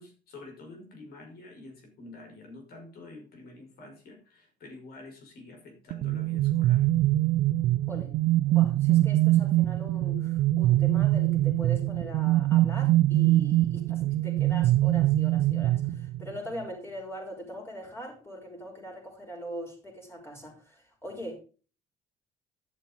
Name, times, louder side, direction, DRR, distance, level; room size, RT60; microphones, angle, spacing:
voice 1, 0.0-6.9, left 2 dB, 65° left, 3 dB, 5.7 m, -48 dB
sound 1, 5.9-16.4, right 15 dB, 75° right, 0.6 m, -24 dB
voice 2, 8.5-21.4, equal, 15° left, 0 dB, 5.6 m, -41 dB
11.0 x 7.3 x 5.4 m, 0.36 s
cardioid pair, 110°, 17 cm